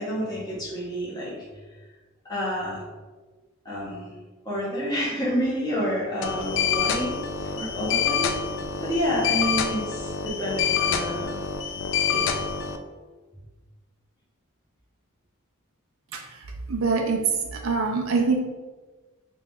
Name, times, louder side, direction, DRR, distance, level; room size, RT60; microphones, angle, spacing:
voice 1, 0.0-1.3 2.2-2.8 3.6-4.1 4.4-8.3 8.8-11.4 12.1-12.2, equal, 20° left, -7 dB, 1.2 m, -29 dB
sound 1, 6.2-12.8, left 7 dB, 60° left, 0.3 m, -26 dB
voice 2, 16.7-17.2 17.5-18.4, right 4 dB, 70° right, 1 dB, 0.5 m, -24 dB
3.1 x 2.8 x 3.6 m, 1.3 s
head